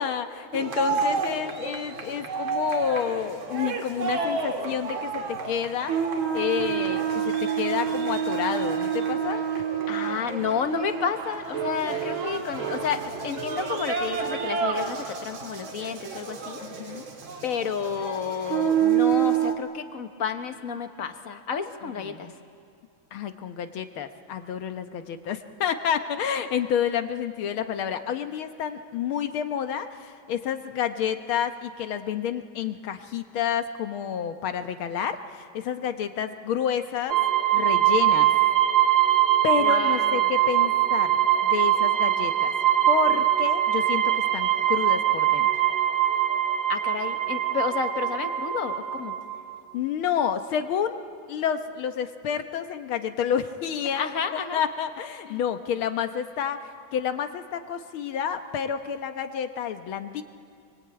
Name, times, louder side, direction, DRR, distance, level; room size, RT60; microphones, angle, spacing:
voice 1, 0.0-6.0 6.3-9.6 11.9-12.4 16.6-17.1 21.9-22.3 23.1-37.2 37.5-38.3 39.4-42.5 42.9-45.5 49.7-51.0 51.3-60.2, left 8 dB, 80° left, 8 dB, 1.9 m, -29 dB
sound 1, 0.5-19.5, right 7 dB, 70° right, 2.7 m, -28 dB
voice 2, 9.9-16.6 17.4-22.3 39.6-40.3 46.7-49.1 53.9-54.6 55.3-55.4, left 6 dB, 45° left, 8 dB, 1.4 m, -31 dB
sound 2, 37.1-49.6, right 12 dB, 45° right, 0.8 m, -22 dB
25.5 x 23.5 x 8.8 m, 2.3 s
omnidirectional pair, 2.3 m